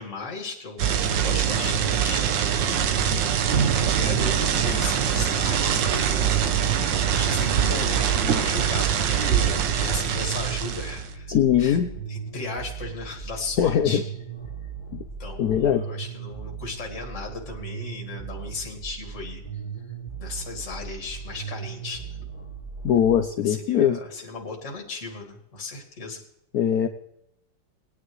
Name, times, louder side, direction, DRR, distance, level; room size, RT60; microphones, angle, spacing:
voice 1, 0.0-2.8 3.3-6.1 7.1-11.8 12.1-14.1 14.6-14.7 15.2-19.4 20.2-22.2 23.4-26.3, left 3 dB, 40° left, 1 dB, 2.5 m, -36 dB
sound 1, 0.8-11.1, right 8 dB, 70° right, 1.6 m, -24 dB
sound 2, 3.5-8.6, right 7 dB, 55° right, 0.9 m, -31 dB
sound 3, 6.3-23.2, right 7 dB, 15° left, 2.2 m, -38 dB
voice 2, 11.3-11.9 13.6-14.0 14.9-15.0 15.4-15.8 22.8-24.0 26.5-26.9, left 9 dB, 65° left, 6 dB, 1.0 m, -21 dB
20.0 x 9.9 x 3.2 m, 0.80 s
omnidirectional pair, 2.1 m